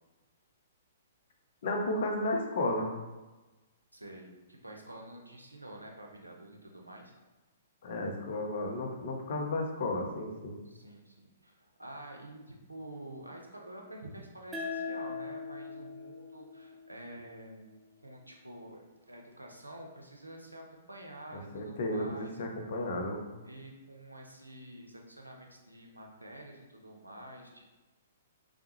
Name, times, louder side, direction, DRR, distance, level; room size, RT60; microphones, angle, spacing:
voice 1, 1.6-2.9 7.8-10.6 21.3-23.2, left 1 dB, 50° left, 1 dB, 0.5 m, -33 dB
voice 2, 3.9-7.1 10.6-17.7 18.0-22.3 23.4-27.6, right 1 dB, 80° right, 1 dB, 0.5 m, -48 dB
sound 1, 14.5-17.7, left 4 dB, 10° right, 0.3 m, -41 dB
3.3 x 2.1 x 2.9 m, 1.2 s
figure-of-eight pair, 115°, 0 cm